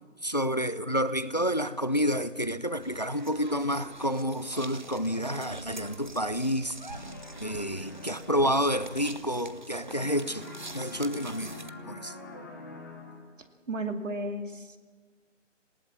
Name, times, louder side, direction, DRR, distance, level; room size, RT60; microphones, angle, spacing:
voice 1, 0.2-6.8 7.4-10.5 10.7-12.2, equal, 35° left, 15 dB, 0.5 m, -29 dB
sound 1, 2.8-11.7, right 2 dB, 40° right, 0.7 m, -45 dB
sound 2, 6.9-9.6 9.9-13.5, left 2 dB, 15° left, 1.2 m, -46 dB
voice 2, 13.7-14.8, right 1 dB, 80° right, 5 dB, 2.7 m, -33 dB
19.5 x 18.5 x 7.4 m, 1.4 s
hypercardioid pair, 175°, 37 cm